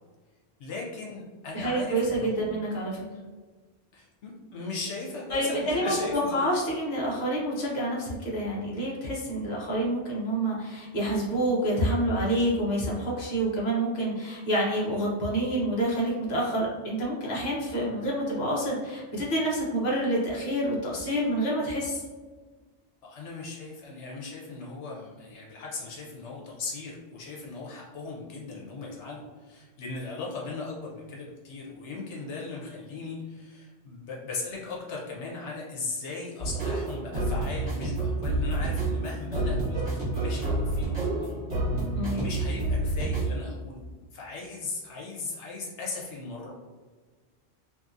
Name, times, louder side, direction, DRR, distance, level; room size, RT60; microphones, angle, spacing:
voice 1, 0.6-2.6 3.9-6.4 23.0-39.8 40.1-41.4 42.1-43.8 44.1-46.5, left 3 dB, 80° left, -3 dB, 1.0 m, -38 dB
voice 2, 1.5-3.0 5.3-22.0 42.0-42.2, right 1 dB, 45° left, -4 dB, 0.8 m, -28 dB
sound 1, 36.4-43.4, right 2 dB, 35° right, 1.4 m, -29 dB
2.7 x 2.7 x 2.4 m, 1.4 s
omnidirectional pair, 1.2 m